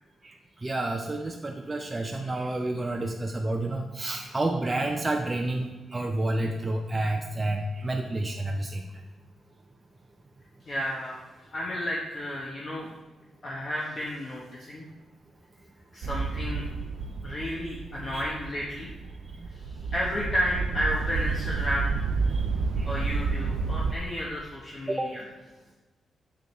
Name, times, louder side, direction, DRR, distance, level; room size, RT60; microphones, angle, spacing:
voice 1, 0.6-8.8 18.1-18.2 22.3-22.4 22.8-22.9 23.9-24.0 24.9-25.1, right 2 dB, 15° right, 2 dB, 0.4 m, -29 dB
voice 2, 10.6-11.2 11.5-12.9 13.4-14.8 15.9-16.7 17.2-18.9 19.5-22.0 22.9-25.3, equal, 35° left, -3 dB, 1.0 m, -32 dB
sound 1, 16.0-23.9, right 4 dB, 75° right, 0.5 m, -30 dB
7.1 x 6.1 x 3.1 m, 1.2 s
wide cardioid pair, 135°, 0 cm